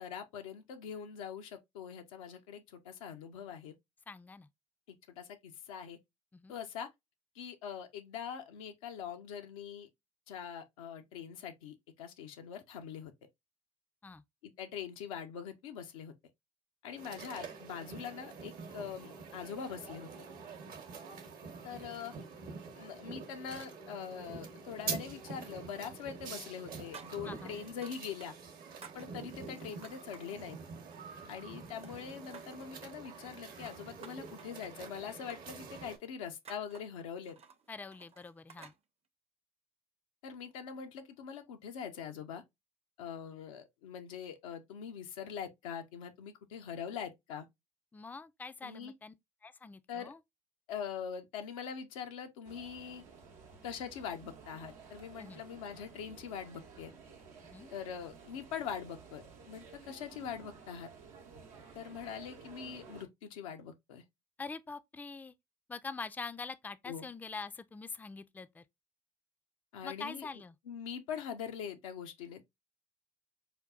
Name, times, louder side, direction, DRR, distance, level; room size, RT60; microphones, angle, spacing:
voice 1, 0.0-3.7 4.9-6.0 6.5-6.9 7.4-9.9 10.3-13.1 14.4-16.1 16.8-20.1 21.6-22.1 22.7-28.3 28.9-30.6 31.3-37.4 40.2-42.4 43.0-47.5 48.6-48.9 49.9-50.1 50.7-53.0 53.6-56.9 57.7-60.9 61.7-64.0 66.9-67.1 69.7-70.3 70.7-72.4, left 7 dB, 90° left, 0.5 m, -43 dB
voice 2, 4.1-4.5 6.3-6.6 14.0-14.2 27.3-27.6 37.7-38.7 47.9-49.1 49.4-50.2 55.2-55.4 57.4-57.7 64.4-65.3 65.7-68.6 69.8-70.6, left 4 dB, 10° left, 0.3 m, -44 dB
sound 1, 17.0-36.0, right 5 dB, 60° right, 0.9 m, -46 dB
sound 2, 25.5-26.1 26.3-28.3 28.6-30.4 30.8-31.6 31.8-32.7 33.3-38.8, right 5 dB, 35° right, 0.6 m, -55 dB
sound 3, 52.4-63.1, right 5 dB, 85° right, 0.8 m, -54 dB
5.0 x 2.3 x 2.3 m
hypercardioid pair, 60°, 17 cm